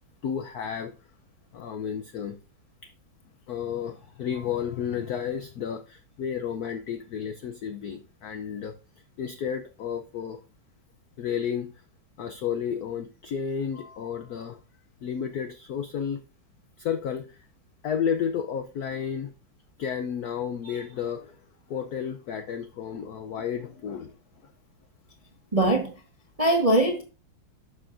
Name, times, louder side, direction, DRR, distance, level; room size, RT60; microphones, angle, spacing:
voice 1, 0.2-0.9 1.5-2.4 3.5-8.7 9.2-10.4 11.2-11.7 12.2-14.6 15.0-16.2 16.8-17.4 17.8-19.3 19.8-21.4 21.7-24.1, left 8 dB, 70° left, 0.9 m, -32 dB
voice 2, 25.5-25.9 26.4-27.0, right 1 dB, 30° right, 0.7 m, -21 dB
11.0 x 6.3 x 2.5 m
omnidirectional pair, 2.3 m